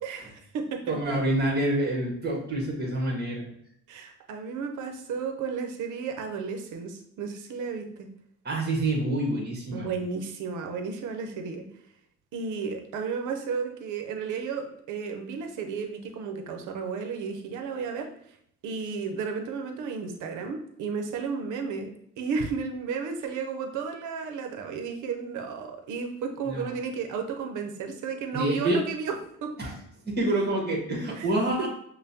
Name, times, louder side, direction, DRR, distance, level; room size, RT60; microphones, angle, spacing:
voice 1, 0.0-1.2 3.9-8.1 9.7-11.6 12.3-18.1 18.6-21.9 22.2-29.2 29.4-29.5 31.1-31.3 31.6-31.7, right 5 dB, 80° right, 4 dB, 0.7 m, -33 dB
voice 2, 0.9-3.5 8.4-9.9 26.4-26.7 28.3-28.8 29.6-29.7 30.0-31.7, right 1 dB, 35° right, -1 dB, 1.3 m, -27 dB
5.4 x 2.2 x 2.7 m, 0.68 s
cardioid pair, 90°, 30 cm